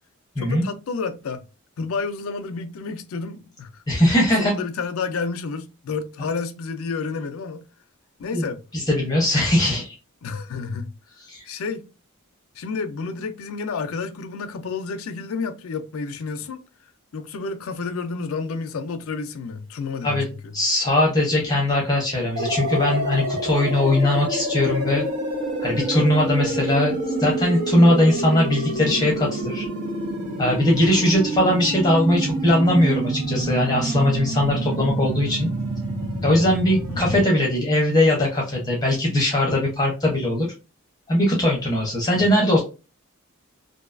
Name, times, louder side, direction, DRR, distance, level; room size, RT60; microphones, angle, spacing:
voice 1, 0.4-1.4 1.8-3.8 4.4-7.6 8.2-8.6 10.2-10.9 11.5-11.8 12.6-16.6 17.1-20.2 26.4-26.5 30.7-31.0 36.9-37.3 42.1-42.3, left 4 dB, 65° left, 0.4 m, -30 dB
voice 2, 3.9-4.5 8.3-8.4 8.7-10.0 11.3-11.4 20.0-20.2 20.5-25.0 25.6-29.7 30.4-35.5 36.2-40.5 41.1-42.6, left 1 dB, 20° left, 0.6 m, -20 dB
sound 1, 22.4-37.3, right 1 dB, 75° right, 1.0 m, -27 dB
2.5 x 2.3 x 2.4 m
head